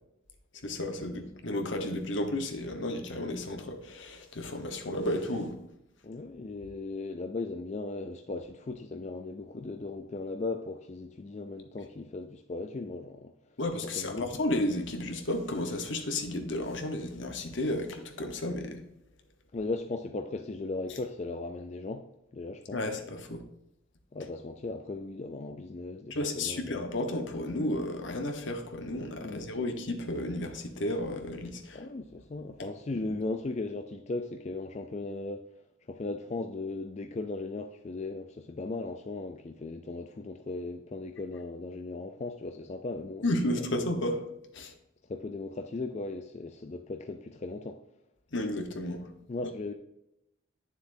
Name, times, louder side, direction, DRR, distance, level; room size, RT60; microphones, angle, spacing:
voice 1, 0.6-5.6 13.6-18.8 22.7-23.4 26.1-31.9 32.6-32.7 43.2-44.2 44.5-44.7 48.3-49.1, left 1 dB, 70° left, 1.2 m, -32 dB
voice 2, 6.0-13.3 13.8-14.4 19.5-22.1 22.3-22.8 24.1-26.7 29.2-29.4 31.7-35.4 35.9-43.2 43.6-43.9 45.1-47.8 49.3-49.7, left 3 dB, 35° left, 0.4 m, -37 dB
9.4 x 6.9 x 2.7 m
head